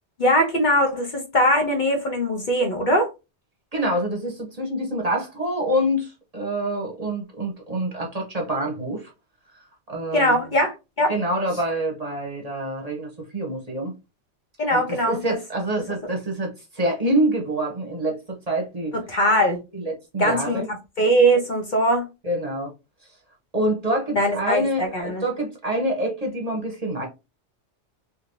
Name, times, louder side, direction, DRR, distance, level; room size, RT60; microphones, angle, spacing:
voice 1, 0.2-3.1 10.1-11.1 14.6-15.2 18.9-19.6 20.2-22.0 24.1-25.2, equal, 50° left, 0.8 m, -21 dB
voice 2, 3.7-9.1 9.9-10.4 11.1-13.9 14.7-19.0 19.7-20.7 22.2-22.7 23.5-27.1, right 1 dB, 35° right, 0.9 m, -26 dB
3.3 x 2.6 x 2.6 m
omnidirectional pair, 1.2 m